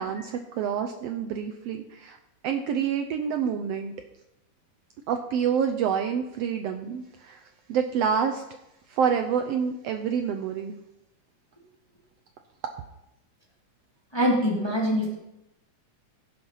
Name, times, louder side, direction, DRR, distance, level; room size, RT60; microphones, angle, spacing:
voice 1, 0.0-2.2 2.4-3.9 5.1-8.4 8.9-10.8, right 7 dB, 85° right, 6 dB, 1.4 m, -27 dB
voice 2, 14.1-15.2, equal, 10° left, -3 dB, 1.6 m, -24 dB
15.5 x 5.4 x 5.6 m, 0.89 s
omnidirectional pair, 3.6 m